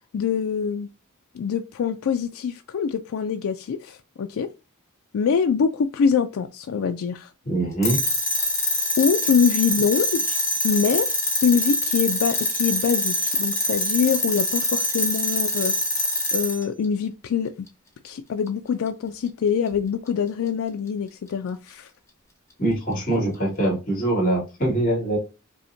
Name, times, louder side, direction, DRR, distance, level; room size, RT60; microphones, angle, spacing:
voice 1, 0.1-0.9 1.3-4.5 5.1-7.3 9.0-10.4 10.6-11.2 11.4-15.7 16.3-17.7 18.0-21.9, left 6 dB, 80° left, 0.3 m, -24 dB
voice 2, 7.4-8.0 22.6-25.2, right 1 dB, 40° left, 2.2 m, -23 dB
sound 1, 7.8-16.6, left 1 dB, 15° left, 0.9 m, -24 dB
5.4 x 2.1 x 2.6 m
head